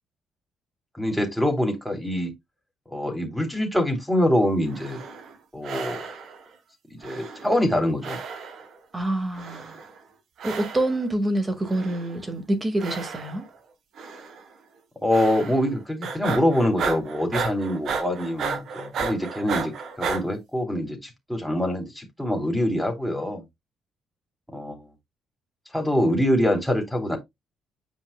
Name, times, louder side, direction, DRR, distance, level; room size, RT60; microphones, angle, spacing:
voice 1, 1.0-2.3 2.9-5.0 5.5-6.0 6.9-8.2 15.0-23.4 24.5-24.8 25.7-27.2, left 1 dB, ahead, 3.1 m, -24 dB
sound 1, 4.6-5.4 5.6-6.4 7.0-8.8 9.3-10.0 10.4-11.0 11.6-12.3 12.8-13.6 14.0-14.4 15.1-15.7 16.0-20.2, right 5 dB, 65° right, 1.5 m, -33 dB
voice 2, 8.9-9.8 10.4-13.4, right 1 dB, 25° right, 2.0 m, -26 dB
7.9 x 5.3 x 2.3 m
supercardioid pair, 60°, 0 cm